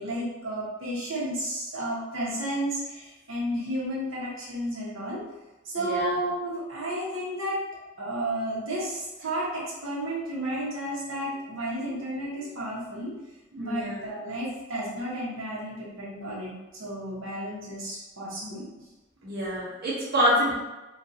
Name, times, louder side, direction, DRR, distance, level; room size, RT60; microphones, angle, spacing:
voice 1, 0.0-5.2 5.6-7.6 8.0-13.1 13.6-18.6, right 1 dB, 90° right, -7 dB, 1.2 m, -32 dB
voice 2, 5.8-6.1 12.4-12.5 13.5-14.0 19.2-20.5, equal, 50° right, -8 dB, 1.0 m, -26 dB
3.8 x 2.6 x 2.7 m, 1.1 s
head